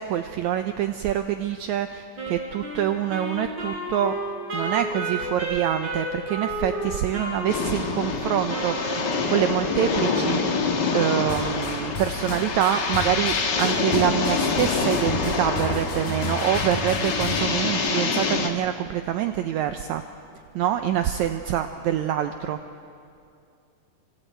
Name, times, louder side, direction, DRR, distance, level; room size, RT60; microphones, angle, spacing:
voice 1, 0.0-4.2 4.5-10.6 10.9-20.0 20.6-22.6, right 10 dB, 75° right, 7 dB, 1.8 m, -26 dB
Wind instrument woodwind instrument, 2.2-9.7, right 2 dB, 35° right, 4.6 m, -32 dB
sound 1, 7.5-18.5, left 4 dB, 45° left, 1.4 m, -26 dB
sound 2, 11.3-17.4, left 4 dB, 80° left, 4.7 m, -34 dB
30.0 x 26.0 x 4.5 m, 2.5 s
omnidirectional pair, 3.9 m